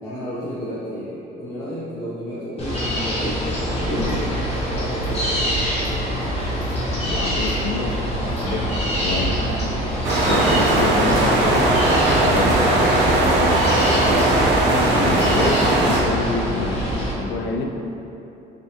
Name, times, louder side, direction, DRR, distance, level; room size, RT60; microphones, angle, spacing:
voice 1, 0.0-4.4 4.6-5.5 9.1-9.3, equal, 15° left, -10 dB, 0.6 m, -32 dB
sound 1, 2.6-17.1, equal, 35° left, 0.9 m, -25 dB
sound 2, 3.7-17.1, right 2 dB, 20° right, 1.5 m, -32 dB
voice 2, 7.0-8.0 8.4-9.3 10.3-12.6 13.3-14.0 14.8-17.7, left 3 dB, 85° left, 2 dB, 0.4 m, -28 dB
sound 3, 10.0-16.0, right 2 dB, 75° right, 0.7 m, -18 dB
3.6 x 3.2 x 2.8 m, 3.0 s
cardioid pair, 125°, 18 cm